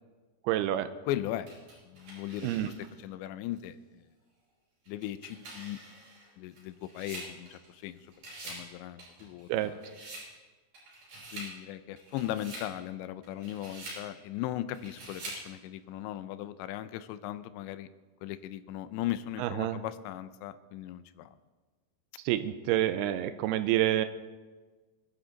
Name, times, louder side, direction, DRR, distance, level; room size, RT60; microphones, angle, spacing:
voice 1, 0.4-0.9 2.4-2.7 9.5-9.7 19.4-19.8 22.3-24.1, right 13 dB, 85° right, 10 dB, 2.3 m, -28 dB
voice 2, 1.1-1.5 1.9-2.7 3.0-4.0 4.9-5.8 6.4-8.1 8.4-9.7 11.3-17.9 18.2-21.4, left 13 dB, 85° left, 13 dB, 2.9 m, -38 dB
sound 1, 1.5-3.0 3.6-3.7 4.9-7.9 8.1-8.7 9.0-10.3 10.7-11.5 12.0-12.7 13.2-14.0 14.7-15.5, right 2 dB, 45° right, 6.5 m, -45 dB
22.0 x 11.5 x 4.0 m, 1.3 s
omnidirectional pair, 5.1 m